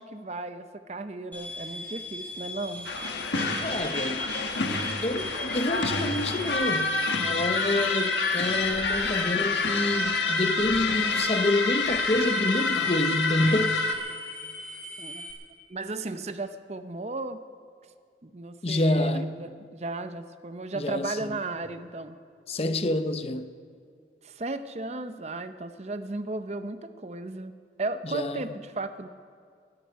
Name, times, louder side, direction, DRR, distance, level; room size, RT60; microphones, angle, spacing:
voice 1, 0.0-2.9 15.0-15.2 15.7-17.4 18.2-22.2 24.2-27.5 27.8-29.1, right 2 dB, 35° right, 0.6 m, -35 dB
sound 1, 1.3-15.3, equal, 10° left, 2.4 m, -40 dB
sound 2, 2.9-14.0, left 3 dB, 85° left, 1.4 m, -27 dB
voice 2, 3.6-4.3 5.0-13.8 18.6-19.3 20.8-21.4 22.5-23.5 28.0-28.5, left 1 dB, 35° left, 0.6 m, -28 dB
13.5 x 9.9 x 9.5 m
head